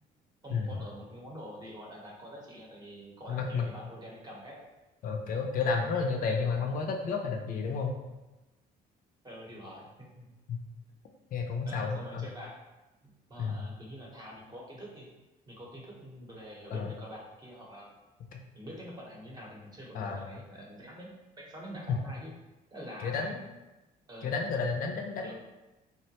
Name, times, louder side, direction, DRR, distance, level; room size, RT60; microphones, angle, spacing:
voice 1, 0.4-4.6 9.2-10.3 11.6-12.5 13.0-15.1 15.5-17.9 18.5-21.1 21.4-22.3 22.7-23.4 24.1-24.3 25.2-25.3, equal, 25° right, -3 dB, 0.8 m, -46 dB
voice 2, 3.3-3.7 5.0-7.9 10.5-10.6 11.3-12.3 13.4-13.6 16.7-16.9 19.9-20.3 21.9-22.0 23.0-23.4 24.2-25.3, left 5 dB, 55° left, 2 dB, 0.4 m, -31 dB
3.7 x 2.1 x 2.8 m, 1.0 s
cardioid pair, 110°, 17 cm